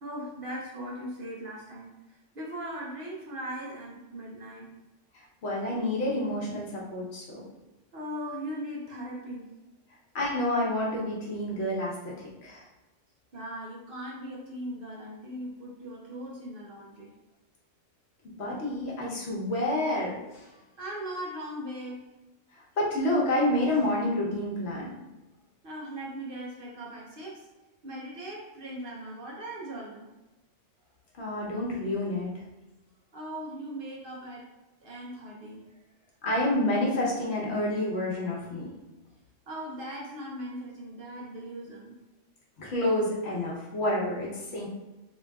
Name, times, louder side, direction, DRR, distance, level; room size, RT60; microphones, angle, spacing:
voice 1, 0.0-4.7 7.9-9.5 13.3-17.1 20.8-22.0 25.6-27.5 27.8-30.1 33.1-34.5 34.8-35.8 39.5-42.0, equal, 55° right, -3 dB, 0.8 m, -39 dB
voice 2, 5.4-7.5 10.1-12.1 12.4-12.6 18.4-20.4 22.8-24.9 31.2-32.3 36.2-38.7 42.6-44.7, left 1 dB, 65° left, -4 dB, 1.1 m, -28 dB
3.7 x 3.0 x 2.3 m, 1.1 s
omnidirectional pair, 1.2 m